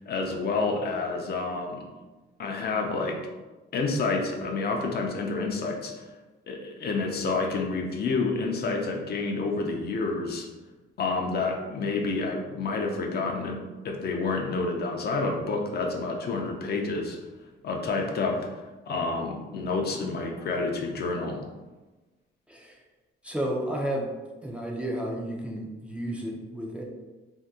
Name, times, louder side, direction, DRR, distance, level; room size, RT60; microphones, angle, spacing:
voice 1, 0.1-1.9 2.4-3.2 3.7-6.0 6.5-10.5 11.0-13.6 13.8-17.2 17.6-18.4 18.9-21.4, left 3 dB, 55° left, 1 dB, 0.5 m, -29 dB
voice 2, 23.2-24.1 24.4-26.8, right 1 dB, 5° right, -1 dB, 0.5 m, -32 dB
2.7 x 2.2 x 3.5 m, 1.2 s
cardioid pair, 90°, 20 cm